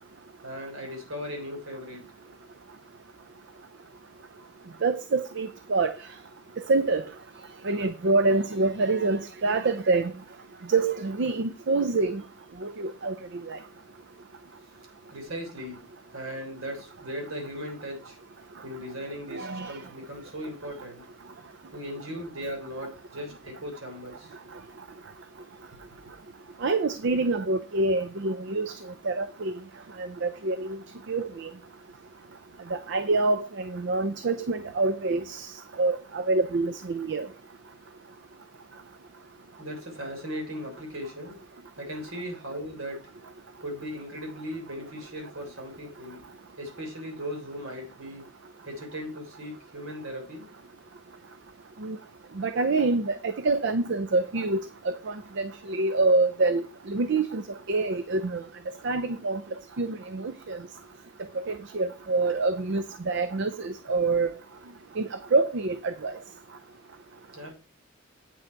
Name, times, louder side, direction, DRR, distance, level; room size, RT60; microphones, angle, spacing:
voice 1, 0.4-2.0 15.1-18.2 18.6-21.1 21.7-24.4 25.7-25.8 39.6-41.4 41.8-43.1 43.6-46.2 46.6-48.3 48.7-50.5 62.3-62.4 67.3-67.5, equal, 70° right, 3.5 m, -38 dB
voice 2, 4.8-6.0 6.6-7.0 7.6-10.1 10.7-12.2 12.6-13.6 19.3-19.8 26.6-29.5 30.0-30.8 31.1-31.5 32.7-37.3 51.8-52.0 52.4-58.4 58.8-59.4 59.8-60.6 61.4-64.3 65.0-66.2, right 3 dB, 55° right, 0.5 m, -26 dB
8.5 x 6.2 x 4.6 m
head